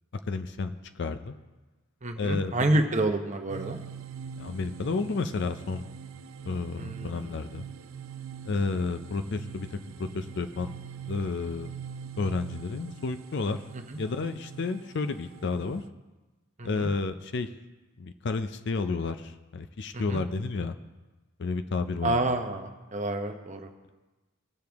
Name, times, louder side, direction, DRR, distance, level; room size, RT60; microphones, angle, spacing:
voice 1, 0.3-1.3 2.2-2.9 4.4-5.9 6.5-7.6 8.4-10.7 11.1-11.7 12.2-13.6 14.0-15.8 16.6-17.5 18.0-20.7 21.4-22.2, left 3 dB, 55° left, 9 dB, 0.5 m, -31 dB
voice 2, 2.0-3.8 6.8-7.4 13.7-14.0 16.6-16.9 19.9-20.2 22.0-23.7, right 2 dB, 35° right, 5 dB, 0.9 m, -29 dB
sound 1, 3.5-15.9, right 7 dB, 80° right, 0.5 m, -43 dB
19.0 x 6.8 x 3.5 m, 1.2 s
head